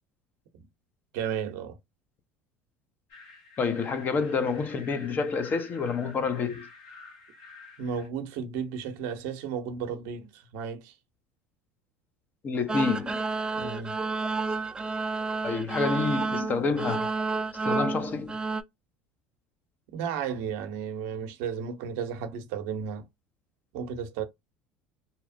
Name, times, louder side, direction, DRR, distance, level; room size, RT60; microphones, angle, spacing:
voice 1, 1.1-1.8 7.8-10.9 13.5-14.0 19.9-23.1 23.7-24.2, right 7 dB, 70° right, 0.6 m, -33 dB
sound 1, 3.1-8.1, left 3 dB, 70° left, 1.2 m, -49 dB
voice 2, 3.6-6.7 12.4-13.2 15.4-17.1 17.5-18.4, left 5 dB, 35° left, 0.6 m, -28 dB
sound 2, 12.7-18.6, right 3 dB, 15° right, 0.4 m, -30 dB
2.8 x 2.0 x 2.5 m
hypercardioid pair, 80°, 5 cm